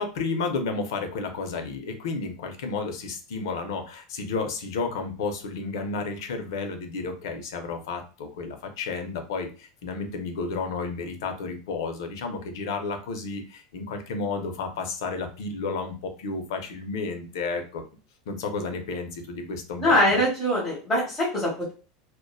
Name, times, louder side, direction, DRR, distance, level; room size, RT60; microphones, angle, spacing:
voice 1, 0.0-17.8 18.3-20.2, left 4 dB, 85° left, 6 dB, 0.5 m, -32 dB
voice 2, 19.8-21.7, left 1 dB, 10° left, -7 dB, 1.1 m, -23 dB
2.5 x 2.1 x 2.3 m, 0.35 s
supercardioid pair, 155°, 2 cm